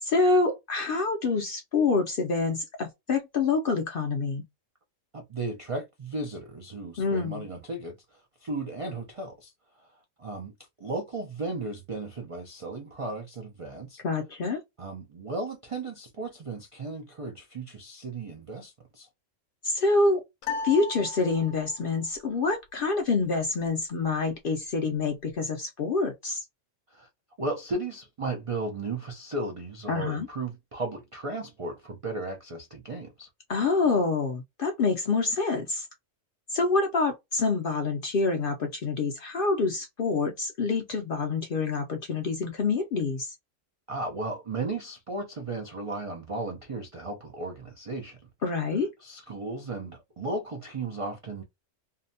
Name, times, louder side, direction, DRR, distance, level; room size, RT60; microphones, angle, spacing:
voice 1, 0.0-4.4 7.0-7.4 14.0-14.6 19.6-20.2 20.6-26.4 29.9-30.3 33.5-35.9 36.5-43.3 48.4-48.9, left 4 dB, 60° left, 0.5 m, -26 dB
voice 2, 5.1-10.5 10.8-14.0 14.8-19.1 26.9-27.1 27.4-33.3 43.9-48.2 48.7-51.4, right 2 dB, 55° right, 0.3 m, -35 dB
sound 1, 20.4-21.9, left 4 dB, 80° left, 0.9 m, -35 dB
2.7 x 2.1 x 2.6 m
omnidirectional pair, 1.4 m